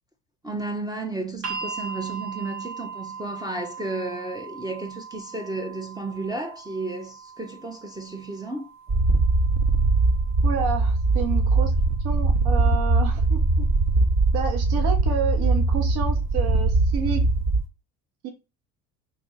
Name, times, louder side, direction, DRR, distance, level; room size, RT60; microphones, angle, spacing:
voice 1, 0.4-8.7, right 2 dB, 10° right, 0.5 m, -33 dB
sound 1, 1.4-13.5 14.6-14.7, right 5 dB, 85° right, 1.4 m, -40 dB
sound 2, 8.9-17.6, right 3 dB, 35° right, 1.0 m, -21 dB
voice 2, 10.4-11.7 12.0-13.7 14.3-17.2 18.2-18.3, right 6 dB, 55° right, 1.1 m, -29 dB
3.1 x 2.4 x 3.9 m
hypercardioid pair, 65°, 46 cm